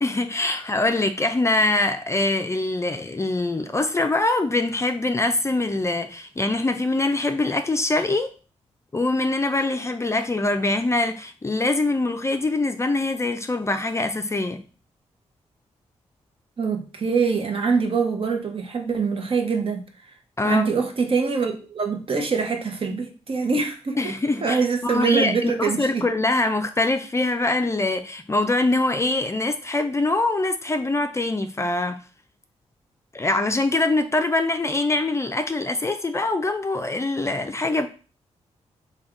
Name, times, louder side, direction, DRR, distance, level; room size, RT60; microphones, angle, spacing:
voice 1, 0.0-8.3 8.9-14.6 20.4-20.7 24.0-32.0 33.1-37.9, left 2 dB, 25° left, 0.4 m, -23 dB
voice 2, 16.6-19.9 20.4-24.0 24.4-26.0, right 5 dB, 50° right, 0.8 m, -24 dB
3.4 x 2.3 x 3.7 m
cardioid pair, 65°, 12 cm